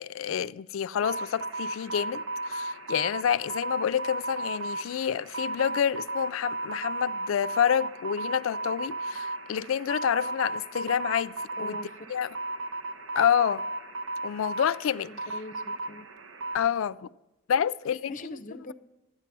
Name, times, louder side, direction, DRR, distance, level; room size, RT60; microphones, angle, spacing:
voice 1, 0.0-11.8 12.1-12.3 13.2-13.6 14.2-15.1 16.5-17.1 17.5-18.3, left 8 dB, 90° left, 0.4 m, -28 dB
sound 1, 1.0-16.6, right 2 dB, 80° right, 0.9 m, -35 dB
voice 2, 11.6-12.1 15.0-16.1 18.1-18.7, left 1 dB, 40° left, 0.6 m, -42 dB
13.5 x 9.9 x 6.0 m
head